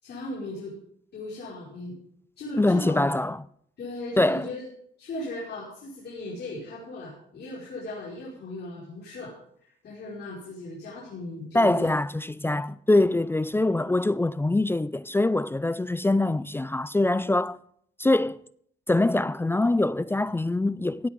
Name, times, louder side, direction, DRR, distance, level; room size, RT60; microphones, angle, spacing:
voice 1, 0.0-0.7 1.1-1.9 2.4-3.1 3.8-4.6 5.0-9.3 9.6-11.9, left 1 dB, 60° left, 5.5 m, -37 dB
voice 2, 2.6-3.4 4.2-4.5 11.5-17.6 18.0-18.4 18.9-21.1, left 2 dB, 10° left, 0.4 m, -23 dB
17.0 x 8.5 x 5.3 m
cardioid pair, 90°, 20 cm